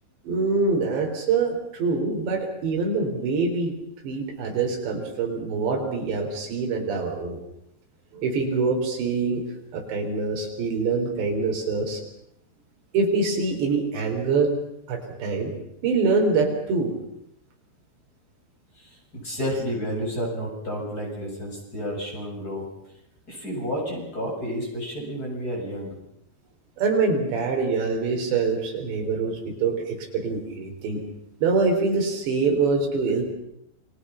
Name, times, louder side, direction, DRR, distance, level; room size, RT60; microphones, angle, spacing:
voice 1, 0.2-3.7 4.0-7.4 8.1-9.4 9.7-12.0 12.9-14.6 14.9-15.5 15.8-16.9 26.8-31.0 31.4-33.3, right 4 dB, 80° right, 2 dB, 6.3 m, -24 dB
voice 2, 19.2-22.6 23.3-26.0, equal, 20° left, -1 dB, 7.7 m, -30 dB
29.0 x 23.5 x 5.8 m, 0.76 s
omnidirectional pair, 5.0 m